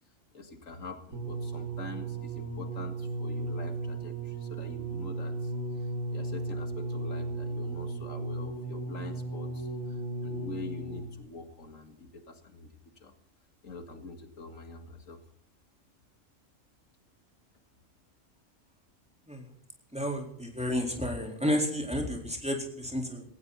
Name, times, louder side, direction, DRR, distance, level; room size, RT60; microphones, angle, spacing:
voice 1, 0.3-5.5 5.8-13.1 13.6-15.2, left 3 dB, 85° left, 7 dB, 2.4 m, -45 dB
sound 1, 1.1-11.2 12.0-12.1, right 2 dB, 80° right, 4.8 m, -35 dB
voice 2, 19.9-23.2, equal, 5° right, 1 dB, 3.9 m, -31 dB
18.5 x 17.0 x 4.1 m, 0.62 s
omnidirectional pair, 1.3 m